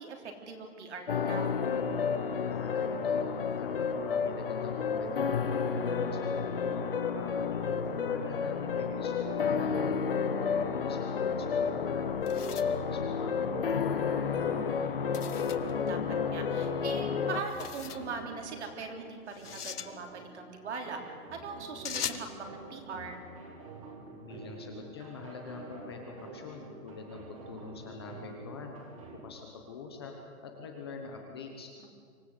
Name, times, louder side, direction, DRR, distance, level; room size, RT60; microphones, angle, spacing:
voice 1, 0.0-1.5 15.8-21.0 21.3-23.2 31.8-31.9, right 4 dB, 50° right, 3 dB, 3.5 m, -41 dB
sound 1, 1.1-17.4, left 6 dB, 40° left, 0.8 m, -31 dB
voice 2, 2.5-3.3 3.6-9.7 10.4-12.1 12.5-14.8 24.2-28.8 29.1-30.1 30.4-31.7, left 4 dB, 15° left, 2 dB, 1.0 m, -45 dB
sound 2, 11.8-13.7 15.1-15.7 17.4-18.1 19.3-19.9 21.8-22.3, left 8 dB, 85° left, 1.7 m, -40 dB
sound 3, 14.2-29.2, right 3 dB, 20° right, 1.9 m, -49 dB
25.0 x 16.5 x 8.2 m, 2.1 s
hypercardioid pair, 180°, 45 cm